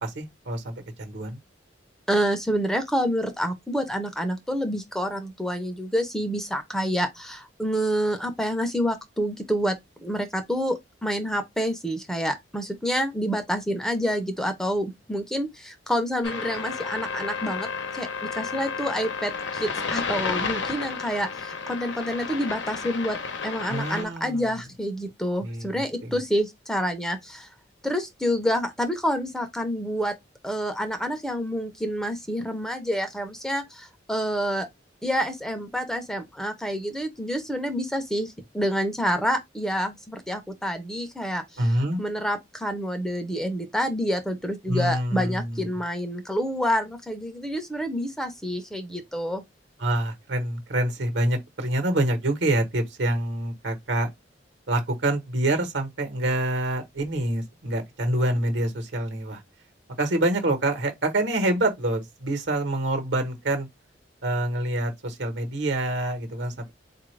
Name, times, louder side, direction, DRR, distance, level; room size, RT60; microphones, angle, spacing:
voice 1, 0.0-1.4 23.7-24.6 25.4-26.2 41.6-42.0 44.7-45.7 49.8-54.1 54.7-59.4 60.0-63.7 64.2-66.7, right 1 dB, 70° right, 1.1 m, -26 dB
voice 2, 2.1-17.7 17.9-23.2 23.4-27.5 27.8-30.1 30.4-34.7 35.0-41.4 42.0-49.4, equal, 5° left, 0.6 m, -28 dB
sound 1, 16.2-24.0, left 5 dB, 85° left, 0.8 m, -32 dB
4.1 x 2.5 x 3.1 m
head